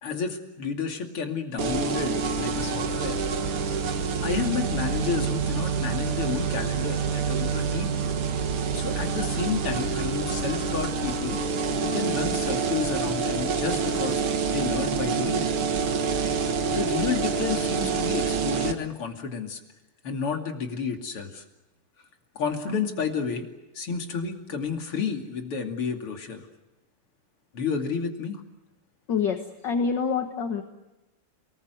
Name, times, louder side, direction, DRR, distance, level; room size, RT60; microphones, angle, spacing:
voice 1, 0.0-3.2 4.2-8.0 8.7-11.4 11.8-15.5 16.7-19.6 20.0-21.4 22.4-23.5 23.8-26.5 27.5-28.4, left 5 dB, 85° left, 3 dB, 3.5 m, -31 dB
sound 1, 1.6-18.7, right 5 dB, 75° right, 2.4 m, -27 dB
voice 2, 29.1-30.6, left 5 dB, 55° left, 5 dB, 2.1 m, -26 dB
30.0 x 20.0 x 8.0 m, 1.0 s
omnidirectional pair, 2.4 m